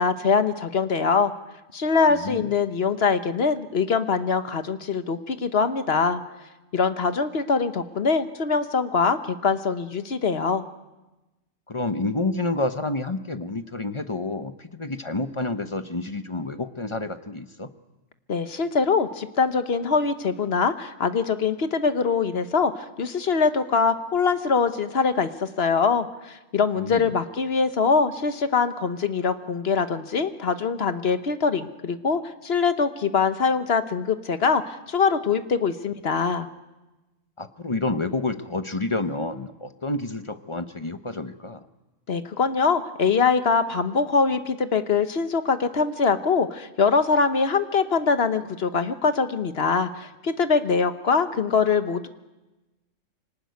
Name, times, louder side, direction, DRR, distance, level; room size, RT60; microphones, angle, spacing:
voice 1, 0.0-1.3 1.7-6.2 6.7-10.6 18.3-36.5 42.1-52.1, left 5 dB, 50° left, 10 dB, 1.2 m, -23 dB
voice 2, 2.1-2.5 11.7-17.7 26.8-27.1 37.4-41.6, left 2 dB, 25° left, 9 dB, 0.8 m, -29 dB
24.5 x 19.0 x 9.4 m, 1.1 s
omnidirectional pair, 1.4 m